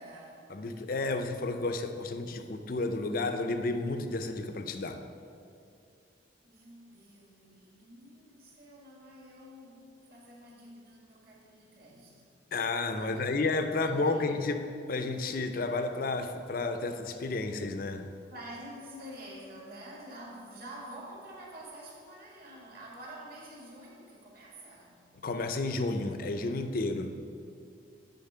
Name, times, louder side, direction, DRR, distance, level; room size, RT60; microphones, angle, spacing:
voice 1, 0.0-0.5 6.4-12.2 13.0-14.4 18.3-25.1, right 1 dB, 50° right, -3 dB, 1.7 m, -48 dB
voice 2, 0.5-5.0 12.5-14.6 14.9-18.1 25.2-27.1, left 3 dB, 50° left, 7 dB, 0.5 m, -31 dB
9.5 x 4.1 x 5.5 m, 2.4 s
head